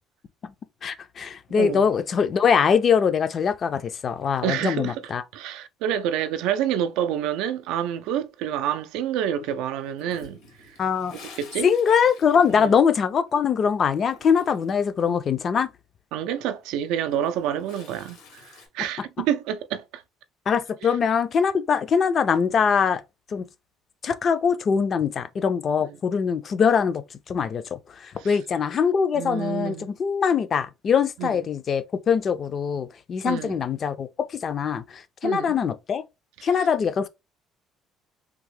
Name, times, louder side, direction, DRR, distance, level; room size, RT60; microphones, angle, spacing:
voice 1, 0.8-5.2 10.8-11.2 11.6-15.7 19.0-19.1 20.5-23.0 23.3-23.5 24.0-36.0 36.4-37.1, left 6 dB, 35° left, 0.3 m, -23 dB
voice 2, 1.5-1.9 4.4-5.0 5.3-10.4 11.4-11.7 12.6-12.7 15.0-15.2 16.1-20.0 28.2-28.4 29.1-29.9 31.2-31.4 33.2-33.6 35.2-35.5, right 10 dB, 85° right, 0.3 m, -28 dB
Toilet flush, 10.0-13.4 13.7-14.9 16.9-18.7, left 4 dB, 80° left, 1.1 m, -48 dB
3.4 x 2.1 x 3.1 m
cardioid pair, 140°, 0 cm